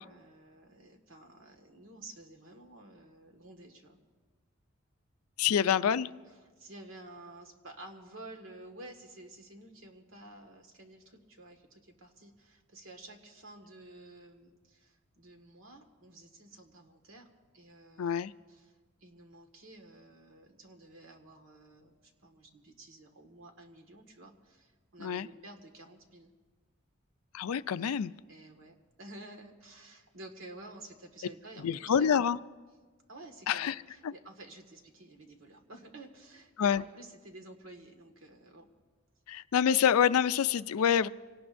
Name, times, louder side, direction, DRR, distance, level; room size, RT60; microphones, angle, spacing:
voice 1, 0.0-4.0 5.4-6.0 6.3-17.3 17.5-26.3 28.3-32.3 33.1-38.7, right 2 dB, 70° right, 3 dB, 1.8 m, -51 dB
voice 2, 5.4-6.1 18.0-18.3 25.0-25.3 27.3-28.1 31.6-32.4 33.5-33.7 36.6-36.8 39.3-41.1, left 8 dB, 90° left, 15 dB, 0.4 m, -26 dB
25.5 x 18.0 x 2.6 m, 1.4 s
head